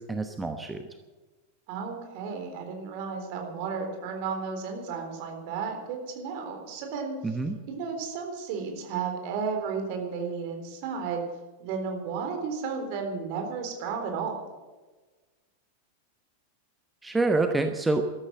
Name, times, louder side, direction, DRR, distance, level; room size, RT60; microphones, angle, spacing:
voice 1, 0.1-0.8 7.2-7.6 17.0-18.1, right 3 dB, 10° right, 6 dB, 1.0 m, -26 dB
voice 2, 1.7-7.4 7.7-11.2 11.6-14.5, right 5 dB, 45° right, 3 dB, 3.8 m, -33 dB
13.5 x 13.0 x 7.3 m, 1.3 s
figure-of-eight pair, 90°, 0 cm